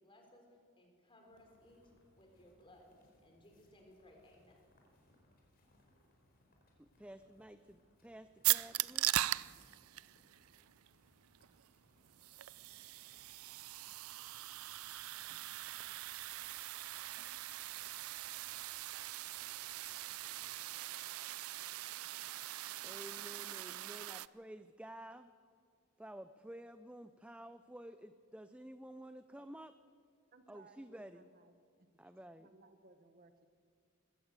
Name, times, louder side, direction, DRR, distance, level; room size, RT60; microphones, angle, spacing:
voice 1, 0.0-2.9 3.2-4.6, left 1 dB, 25° left, 2 dB, 3.9 m, -62 dB
sound 1, 1.3-20.6, left 1 dB, 45° left, 4.6 m, -71 dB
voice 2, 6.8-9.1 22.8-25.3 26.0-29.7 30.5-31.2 32.0-32.5, right 1 dB, 5° right, 10 dB, 0.4 m, -52 dB
sound 2, 8.4-24.3, right 16 dB, 80° right, 0.5 m, -40 dB
voice 3, 30.3-31.5 32.4-33.5, right 3 dB, 40° right, 8 dB, 1.1 m, -63 dB
20.5 x 16.0 x 8.1 m, 2.1 s
head